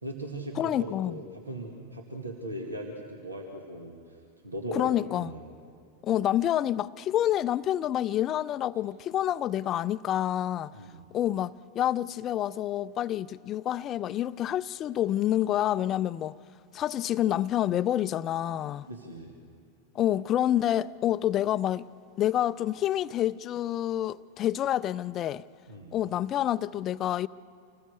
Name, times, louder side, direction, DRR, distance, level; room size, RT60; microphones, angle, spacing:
voice 1, 0.0-5.5 10.7-11.0 18.9-19.3 25.7-26.0, right 1 dB, 80° right, 2.0 m, -39 dB
voice 2, 0.6-1.2 4.7-5.3 6.0-10.7 11.1-16.4 16.7-18.9 19.9-21.9 22.2-25.4 25.9-27.3, left 12 dB, 30° left, 0.4 m, -28 dB
26.5 x 19.5 x 6.6 m
figure-of-eight pair, 90°, 0 cm